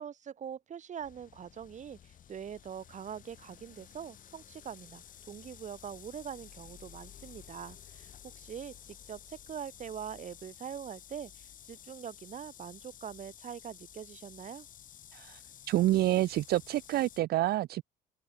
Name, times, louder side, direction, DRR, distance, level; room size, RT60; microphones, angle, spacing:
voice 1, 0.0-14.7, right 8 dB, 45° right, 3.9 m, -43 dB
sound 1, 1.0-17.2, left 9 dB, 50° left, 6.0 m, -53 dB
voice 2, 15.7-17.8, right 15 dB, 65° right, 0.8 m, -28 dB
cardioid pair, 110°, 17 cm